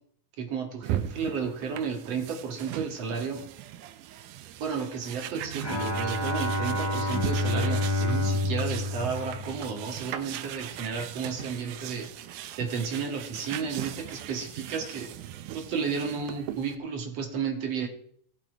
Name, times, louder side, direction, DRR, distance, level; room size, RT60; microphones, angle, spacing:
voice 1, 0.4-3.4 4.6-12.1 12.6-15.1 15.5-17.9, right 6 dB, 55° right, 4 dB, 2.8 m, -32 dB
sound 1, 0.8-16.8, right 12 dB, 85° right, 2.3 m, -39 dB
Bowed string instrument, 5.6-10.1, left 2 dB, 25° left, 0.6 m, -29 dB
17.5 x 7.1 x 4.6 m, 0.63 s
omnidirectional pair, 3.5 m